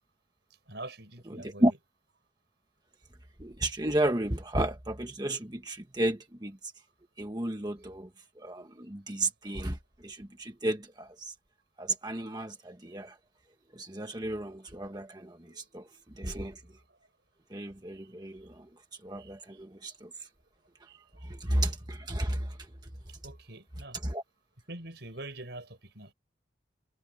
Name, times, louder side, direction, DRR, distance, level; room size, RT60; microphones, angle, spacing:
voice 1, 0.7-1.6 15.4-15.7 16.9-17.0 17.9-18.1 19.2-19.6 20.9-21.6 23.2-24.0 24.7-26.1, right 2 dB, 65° right, 5.1 m, -45 dB
voice 2, 1.3-1.7 3.4-6.7 7.2-8.1 8.4-9.8 10.0-11.3 11.8-13.2 13.7-15.9 16.1-16.6 17.5-18.7 19.0-20.3 21.2-22.6 22.8-22.9 24.0-24.2, right 1 dB, 20° right, 1.3 m, -33 dB
head